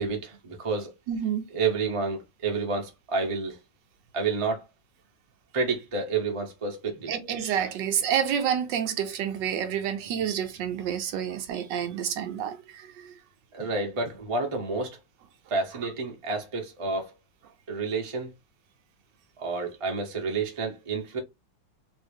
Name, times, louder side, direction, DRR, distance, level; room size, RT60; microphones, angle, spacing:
voice 1, 0.0-0.9 1.5-3.6 4.1-4.6 5.5-7.1 13.5-15.0 15.5-17.1 17.7-18.3 19.4-21.2, right 4 dB, 45° right, 0.4 m, -29 dB
voice 2, 1.1-1.5 7.1-13.2, right 8 dB, 75° right, 1.1 m, -29 dB
3.1 x 2.7 x 3.4 m
omnidirectional pair, 2.2 m